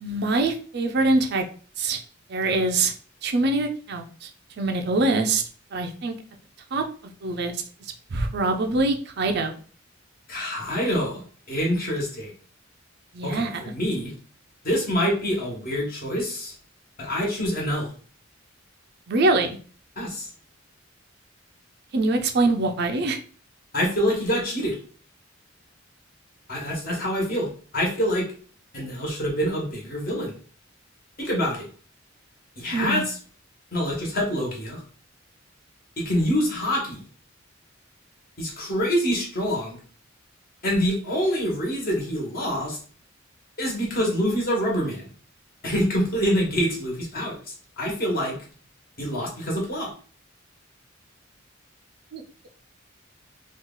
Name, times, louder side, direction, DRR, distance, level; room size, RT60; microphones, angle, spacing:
voice 1, 0.0-1.4 1.8-2.0 2.3-2.9 3.2-4.3 4.6-5.4 5.7-6.1 6.7-6.8 7.2-7.6 8.1-9.5 13.1-13.6 19.1-19.6 21.9-23.2 32.7-33.0 52.1-52.2, right 2 dB, 55° right, 5 dB, 0.4 m, -24 dB
voice 2, 10.3-11.2 11.5-12.3 13.2-14.1 14.6-16.5 17.0-17.9 20.0-20.3 23.7-24.8 26.5-28.3 28.7-30.3 31.2-31.7 32.6-33.2 33.7-34.8 36.0-37.0 38.4-39.8 40.6-42.8 43.6-45.1 45.6-47.3 47.8-48.4 49.0-49.9, equal, 45° left, -2 dB, 1.3 m, -26 dB
3.0 x 2.4 x 3.7 m, 0.42 s
head